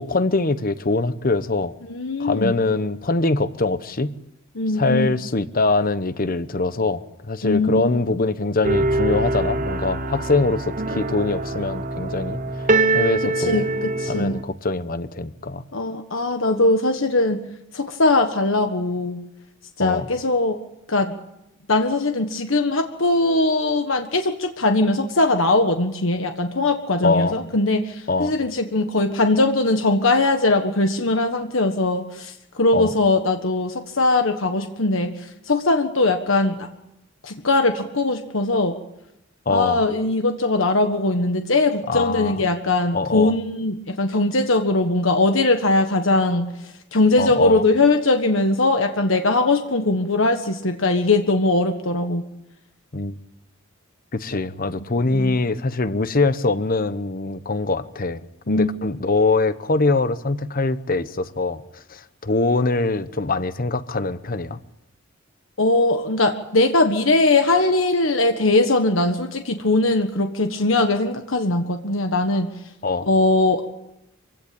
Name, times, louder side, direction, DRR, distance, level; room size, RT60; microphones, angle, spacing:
voice 1, 0.0-1.7 2.2-4.2 4.8-12.7 12.9-13.6 14.1-15.6 19.8-20.0 27.0-27.4 28.1-28.4 32.7-32.9 39.5-39.8 41.9-42.4 42.9-43.3 47.2-47.6 52.9-53.2 54.1-58.2 58.5-61.6 61.9-64.6 72.8-73.1, left 3 dB, 45° left, 13 dB, 1.0 m, -23 dB
voice 2, 1.9-2.6 4.5-5.2 7.4-7.9 13.2-14.4 15.7-17.4 17.7-19.2 19.8-20.6 20.9-21.1 21.7-36.7 37.2-38.7 39.5-52.2 54.7-54.8 58.5-58.7 65.6-72.5 73.0-73.7, left 2 dB, 75° left, 6 dB, 1.5 m, -20 dB
sound 1, 8.6-14.4, right 2 dB, 40° right, 1.3 m, -24 dB
25.0 x 16.5 x 8.7 m, 0.86 s
head